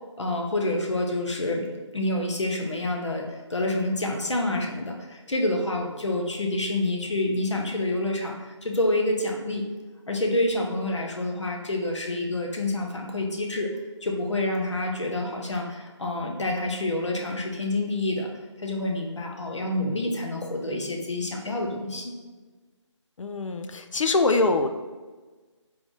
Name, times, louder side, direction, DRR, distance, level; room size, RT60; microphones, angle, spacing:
voice 1, 0.2-9.7 10.1-18.3 18.6-22.1, left 1 dB, 65° left, 2 dB, 0.9 m, -28 dB
voice 2, 23.2-24.7, left 3 dB, 85° left, 7 dB, 0.5 m, -23 dB
3.8 x 3.8 x 3.3 m, 1.3 s
figure-of-eight pair, 175°, 16 cm